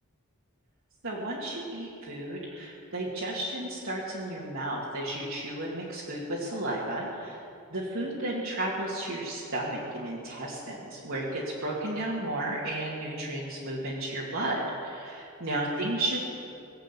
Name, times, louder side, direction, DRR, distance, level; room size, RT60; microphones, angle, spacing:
voice 1, 1.0-7.4 7.7-16.3, right 1 dB, 60° right, -6 dB, 2.2 m, -33 dB
20.5 x 8.1 x 8.4 m, 2.6 s
head